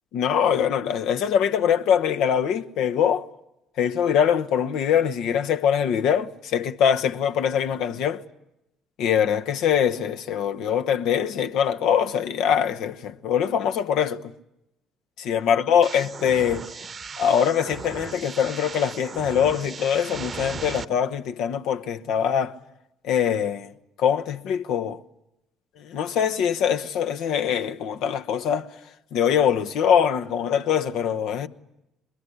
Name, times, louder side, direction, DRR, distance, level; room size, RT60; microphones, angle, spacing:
voice 1, 0.1-3.3 3.8-8.2 9.0-14.2 15.2-16.6 17.2-22.5 23.0-23.7 24.0-25.0 25.8-28.7 29.1-31.5, left 8 dB, 65° left, 1.1 m, -23 dB
sound 1, 15.8-20.8, right 5 dB, 40° right, 0.9 m, -37 dB
22.5 x 22.5 x 10.0 m
hypercardioid pair, 55°, 0 cm